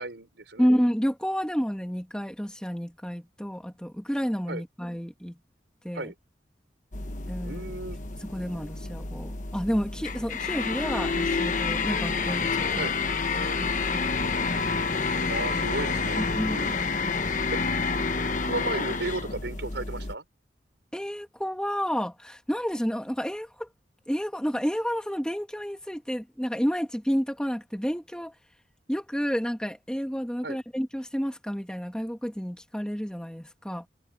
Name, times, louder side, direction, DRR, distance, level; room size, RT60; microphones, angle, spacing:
voice 1, 0.0-0.7 4.5-4.6 5.9-6.1 7.4-8.0 12.8-12.9 15.3-16.8 17.5-17.6 18.5-20.2 30.4-30.6, right 2 dB, 80° right, 4.8 m, -34 dB
voice 2, 0.6-5.3 5.8-6.1 7.3-7.6 8.2-12.9 13.6-14.3 16.2-16.7 17.0-17.2 20.9-23.7 24.1-28.3 28.9-33.9, equal, 5° left, 2.4 m, -30 dB
sound 1, 6.9-20.1, left 4 dB, 45° left, 1.3 m, -29 dB
head